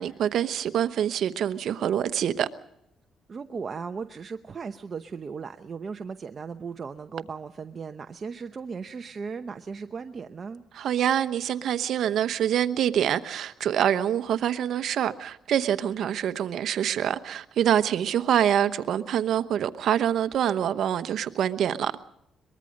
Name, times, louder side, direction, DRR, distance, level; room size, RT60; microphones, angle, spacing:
voice 1, 0.0-2.5 10.7-21.9, right 10 dB, 70° right, 1.0 m, -25 dB
voice 2, 3.3-10.6, right 5 dB, 40° right, 0.8 m, -37 dB
23.0 x 21.5 x 5.3 m
cardioid pair, 90°, 0 cm